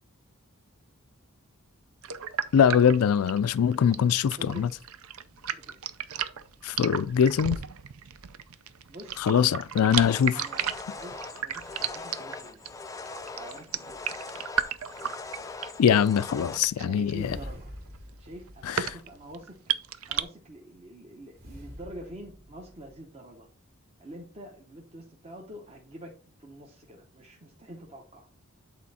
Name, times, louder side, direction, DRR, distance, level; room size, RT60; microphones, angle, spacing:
sound 1, 2.0-20.2, right 8 dB, 75° right, 0.6 m, -34 dB
voice 1, 2.5-4.7 6.6-7.6 9.2-10.4 15.8-17.4 18.6-18.9, left 8 dB, 85° left, 0.4 m, -22 dB
voice 2, 4.4-4.7 5.5-5.7 8.9-9.3 10.3-12.6 13.3-14.4 16.8-17.7 18.2-19.6 20.1-23.5 24.0-28.5, right 1 dB, 30° right, 0.9 m, -46 dB
sound 2, 10.0-16.6, left 3 dB, 15° left, 0.3 m, -41 dB
sound 3, 17.0-19.5 21.3-23.0, equal, 45° right, 2.2 m, -46 dB
8.5 x 4.3 x 4.2 m
head